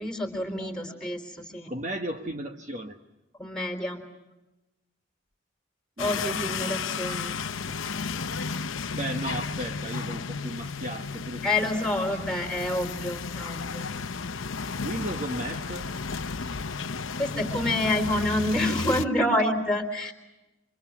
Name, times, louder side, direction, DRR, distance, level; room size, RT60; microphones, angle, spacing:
voice 1, 0.0-1.7 3.4-4.0 6.0-7.3 7.7-8.0 11.4-13.9 17.2-20.1, left 1 dB, 5° left, 5 dB, 3.8 m, -28 dB
voice 2, 1.7-3.0 6.0-7.2 8.9-12.4 14.8-15.9 18.8-19.0, right 1 dB, 35° right, 4 dB, 1.3 m, -36 dB
sound 1, 6.0-19.1, left 5 dB, 80° left, 0.8 m, -33 dB
30.0 x 26.5 x 6.0 m, 1.0 s
head